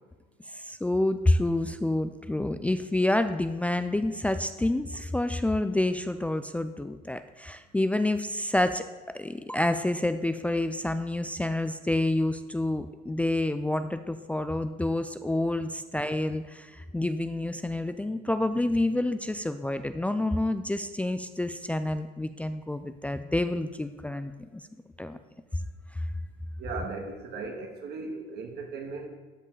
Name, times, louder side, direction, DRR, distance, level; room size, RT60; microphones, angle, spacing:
voice 1, 0.5-8.8 9.1-24.6 25.0-25.2 25.9-26.0, left 1 dB, 10° left, 10 dB, 0.4 m, -28 dB
voice 2, 26.6-29.1, right 4 dB, 70° right, 2 dB, 1.9 m, -37 dB
12.5 x 5.3 x 4.0 m, 1.4 s
cardioid pair, 110°, 17 cm